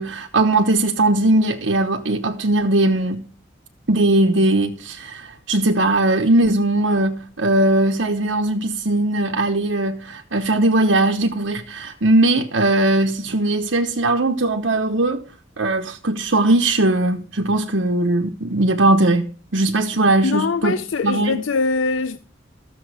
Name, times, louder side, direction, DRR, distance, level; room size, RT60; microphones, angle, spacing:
voice 1, 0.0-3.3 3.9-15.2 15.6-19.3 19.5-20.7 21.0-21.4, right 2 dB, 75° right, 1.1 m, -19 dB
voice 2, 20.2-22.2, left 4 dB, 85° left, 0.5 m, -22 dB
13.0 x 7.1 x 5.0 m
head